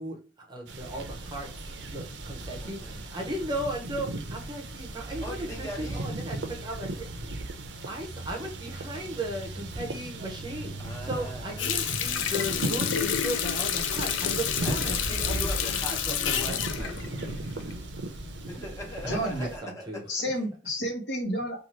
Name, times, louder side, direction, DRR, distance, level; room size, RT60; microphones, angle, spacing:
voice 1, 0.0-1.5 1.9-7.1 7.9-16.9 19.0-20.0, right 1 dB, 25° right, 0.7 m, -36 dB
sound 1, 0.7-19.6, right 2 dB, 65° right, 0.5 m, -36 dB
voice 2, 2.6-3.0 5.2-6.0 10.8-11.6 14.6-17.8 18.5-19.9, equal, 15° left, 0.9 m, -41 dB
Water tap faucet, 11.6-18.0 18.4-18.5, left 9 dB, 90° left, 0.4 m, -29 dB
voice 3, 19.1-19.5 20.1-21.6, equal, 65° left, 1.0 m, -30 dB
2.7 x 2.3 x 3.0 m
head